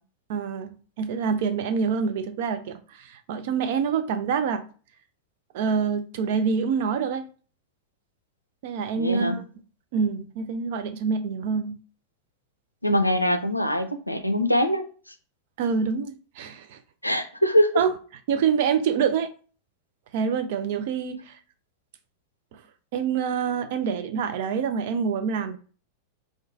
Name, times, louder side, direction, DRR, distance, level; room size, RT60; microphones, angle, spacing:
voice 1, 0.3-0.7 1.0-4.6 5.5-7.3 8.6-9.4 9.9-11.8 15.6-16.8 17.8-17.9 18.3-19.3 20.1-21.4 22.5-22.6 22.9-25.6, right 6 dB, 50° right, 0.4 m, -26 dB
voice 2, 8.9-9.4 12.8-14.8 17.0-17.7, equal, 85° left, 0.4 m, -23 dB
3.0 x 2.2 x 3.5 m
figure-of-eight pair, 90°, 0 cm